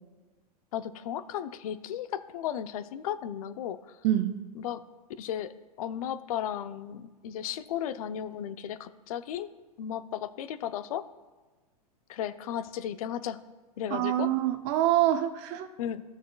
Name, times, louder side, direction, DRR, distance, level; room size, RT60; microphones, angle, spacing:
voice 1, 0.7-4.0 4.5-4.8 5.2-5.5 5.8-9.5 9.8-11.0 12.1-13.4 13.8-14.3 15.8-16.0, left 10 dB, 60° left, 12 dB, 0.7 m, -35 dB
voice 2, 4.0-4.4 13.9-15.7, right 12 dB, 45° right, 7 dB, 0.7 m, -26 dB
16.0 x 6.2 x 2.3 m, 1.3 s
hypercardioid pair, 110°, 20 cm